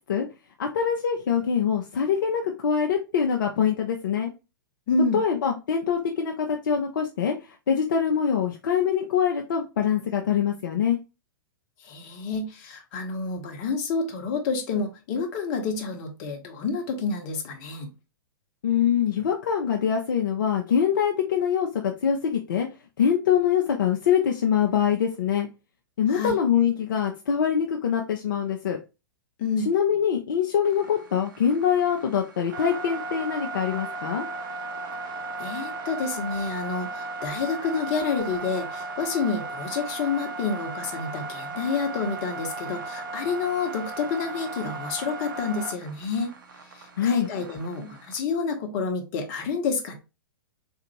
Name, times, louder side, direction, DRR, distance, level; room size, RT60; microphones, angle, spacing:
voice 1, 0.6-4.3 5.1-7.3 7.7-11.0 18.6-22.7 23.0-25.5 26.0-28.8 29.7-34.3 47.0-47.3, left 8 dB, 60° left, 0.5 m, -24 dB
voice 2, 4.9-5.2 11.8-17.9 26.1-26.3 29.4-29.7 35.4-46.3 47.0-49.9, left 4 dB, 40° left, 0.9 m, -29 dB
sound 1, 30.6-48.2, right 3 dB, 60° right, 0.7 m, -36 dB
3.8 x 2.5 x 2.9 m
figure-of-eight pair, 105°, 12 cm